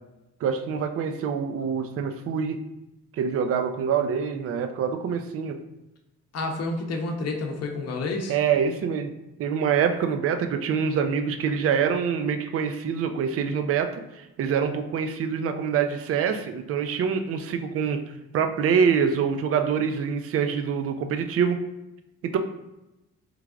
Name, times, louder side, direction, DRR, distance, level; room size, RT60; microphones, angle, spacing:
voice 1, 0.4-2.6 3.1-5.6 8.3-9.1 9.4-18.0 18.3-21.6 22.2-22.4, right 7 dB, 50° right, 7 dB, 0.4 m, -25 dB
voice 2, 6.3-8.4, left 3 dB, 55° left, 2 dB, 0.7 m, -29 dB
3.2 x 2.4 x 3.5 m, 0.95 s
cardioid pair, 90°, 30 cm